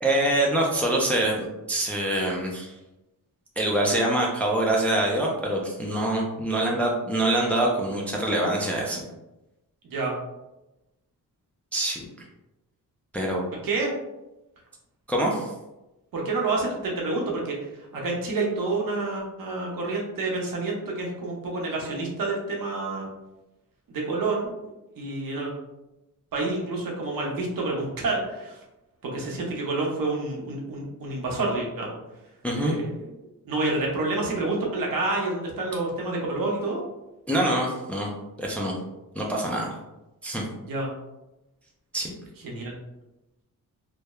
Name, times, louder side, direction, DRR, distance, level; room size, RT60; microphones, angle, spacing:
voice 1, 0.0-2.7 3.6-9.0 11.7-12.0 13.1-13.4 15.1-15.5 32.4-32.7 37.3-38.1 38.4-38.7 39.2-39.7 40.2-40.4 41.9-42.1, right 1 dB, 5° left, -2 dB, 0.3 m, -25 dB
voice 2, 16.1-17.6 17.9-23.1 23.9-24.5 24.9-25.5 26.3-28.6 29.0-32.0 32.6-33.1 33.4-36.8 40.6-40.9 42.4-42.8, right 3 dB, 70° right, -2 dB, 0.8 m, -28 dB
2.9 x 2.1 x 2.2 m, 0.98 s
wide cardioid pair, 120°, 35 cm